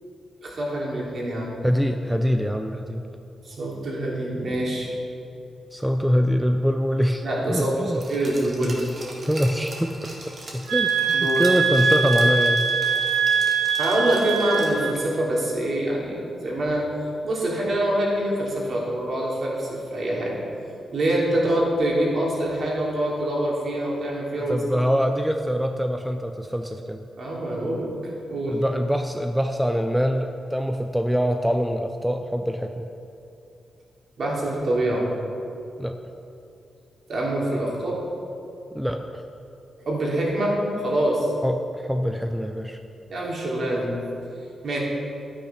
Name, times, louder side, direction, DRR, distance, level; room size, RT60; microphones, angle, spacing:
voice 1, 0.4-1.5 3.4-4.9 7.2-8.8 11.1-11.4 13.8-16.8 17.2-20.3 20.9-24.8 27.2-27.9 28.3-28.6 34.2-35.0 37.1-38.0 39.8-41.3 43.1-44.0 44.6-44.8, right 1 dB, 50° right, -4 dB, 3.1 m, -25 dB
voice 2, 1.6-3.0 5.7-8.0 8.6-8.8 9.2-9.9 10.3-10.9 11.2-12.6 24.4-27.0 28.5-32.9 35.8-36.0 38.7-39.2 41.4-42.8, equal, 5° right, 5 dB, 0.5 m, -24 dB
Glass, 8.0-14.9 15.3-15.4, right 1 dB, 35° right, 2.0 m, -41 dB
sound 1, 10.7-15.0, right 5 dB, 90° right, 1.0 m, -22 dB
12.0 x 9.2 x 5.8 m, 2.7 s
wide cardioid pair, 150°, 0 cm